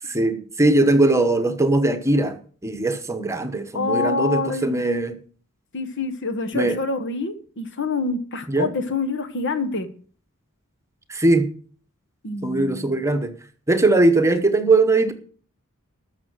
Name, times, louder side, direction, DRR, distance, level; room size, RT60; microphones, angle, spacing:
voice 1, 0.0-5.2 6.5-6.8 8.5-8.7 11.1-11.5 12.4-13.3 13.7-15.1, right 2 dB, 15° right, 9 dB, 1.1 m, -20 dB
voice 2, 3.7-4.8 5.7-9.9 12.2-12.9, left 3 dB, 60° left, 11 dB, 1.3 m, -26 dB
13.0 x 6.5 x 6.3 m, 0.43 s
head